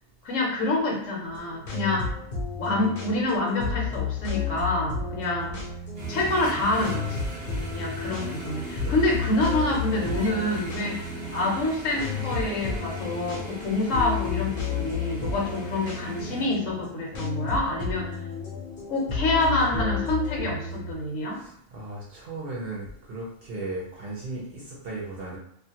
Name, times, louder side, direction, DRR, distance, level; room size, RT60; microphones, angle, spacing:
voice 1, 0.2-2.1 2.6-5.6 6.1-7.2 7.7-18.2 18.9-21.4, left 2 dB, 70° left, -1 dB, 1.0 m, -27 dB
sound 1, 1.3-20.9, left 5 dB, 55° left, 0.6 m, -32 dB
sound 2, 5.9-16.5, right 2 dB, 35° right, 1.0 m, -38 dB
voice 2, 7.4-7.8 8.8-9.0 21.4-25.4, right 2 dB, 55° right, -5 dB, 0.7 m, -36 dB
2.4 x 2.2 x 2.7 m, 0.69 s
omnidirectional pair, 1.5 m